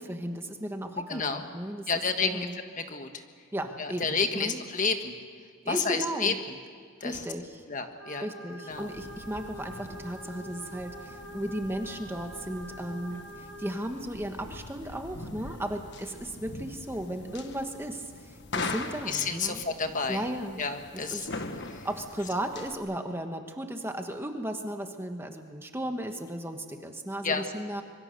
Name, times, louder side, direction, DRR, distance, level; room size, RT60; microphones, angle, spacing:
voice 1, 0.0-1.9 2.2-2.6 3.5-4.6 5.6-6.4 7.0-7.6 8.2-19.6 20.1-20.6 21.1-21.2 21.8-27.8, right 1 dB, 10° right, 5 dB, 1.4 m, -35 dB
voice 2, 1.1-1.4 1.9-3.2 3.8-5.2 5.7-6.3 7.0-7.2 7.7-8.3 8.6-8.9 19.1-20.2 20.6-21.3 21.7-21.9 27.2-27.4, left 4 dB, 35° left, 6 dB, 1.5 m, -30 dB
sound 1, 8.0-13.8, equal, 85° right, 2.5 m, -45 dB
sound 2, 8.7-22.7, left 3 dB, 55° left, 1.5 m, -42 dB
25.5 x 23.0 x 6.8 m, 2.1 s
head